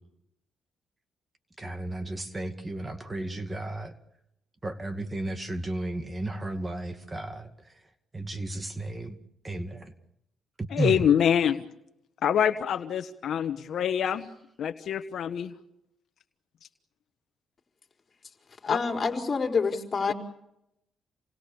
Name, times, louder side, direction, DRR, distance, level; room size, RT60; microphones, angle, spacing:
voice 1, 1.6-3.9 4.6-7.8 8.1-9.2 9.4-9.9 10.6-11.0, right 2 dB, 20° right, 8 dB, 2.2 m, -33 dB
voice 2, 10.7-11.6 12.2-14.3 14.6-15.5 18.7-18.8, left 8 dB, 65° left, 9 dB, 1.1 m, -25 dB
voice 3, 18.6-20.1, left 4 dB, 35° left, 3 dB, 4.4 m, -27 dB
28.5 x 20.0 x 7.0 m, 0.81 s
cardioid pair, 90°, 0 cm